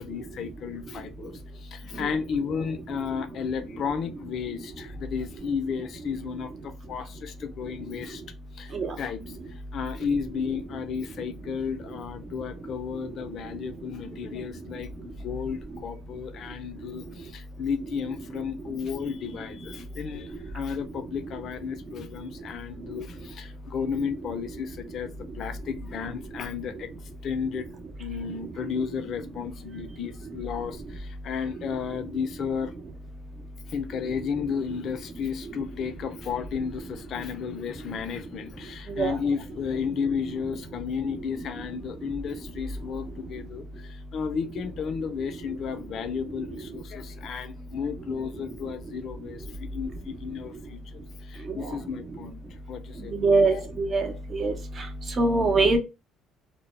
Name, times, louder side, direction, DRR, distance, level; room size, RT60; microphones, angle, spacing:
voice 1, 0.0-8.2 8.5-26.9 27.2-27.7 28.0-32.7 33.7-52.4 52.7-53.7, left 6 dB, 55° left, 0.4 m, -33 dB
voice 2, 53.2-54.5 55.2-55.8, right 3 dB, 40° right, 0.7 m, -22 dB
2.1 x 2.0 x 3.2 m
supercardioid pair, 90°, 0 cm